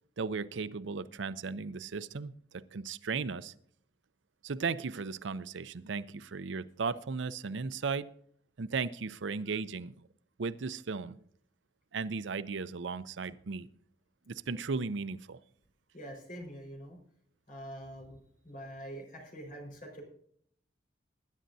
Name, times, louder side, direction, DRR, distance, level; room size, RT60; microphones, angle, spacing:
voice 1, 0.2-2.3 2.7-3.5 4.4-8.1 8.6-9.9 10.4-11.2 11.9-13.7 14.3-15.4, right 4 dB, 70° right, 15 dB, 0.6 m, -36 dB
voice 2, 15.9-17.0 17.5-18.2 18.4-20.0, right 1 dB, 45° left, 1 dB, 4.6 m, -45 dB
20.5 x 10.0 x 2.7 m, 0.63 s
head